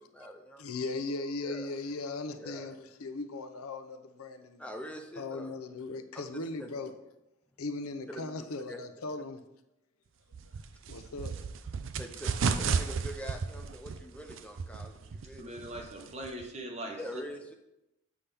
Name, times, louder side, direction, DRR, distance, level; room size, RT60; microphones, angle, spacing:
voice 1, 0.0-0.6 1.4-1.7 2.4-2.7 4.6-5.5 6.1-6.7 8.1-8.3 8.7-8.8 12.0-15.6 16.9-17.5, equal, 5° left, 0.6 m, -44 dB
voice 2, 0.6-4.6 5.2-6.9 7.6-9.4 10.9-11.4, left 3 dB, 90° left, 0.6 m, -38 dB
sound 1, 10.3-16.5, right 5 dB, 60° right, 0.4 m, -34 dB
voice 3, 15.4-17.2, right 1 dB, 30° right, 1.1 m, -41 dB
8.3 x 5.7 x 3.5 m
head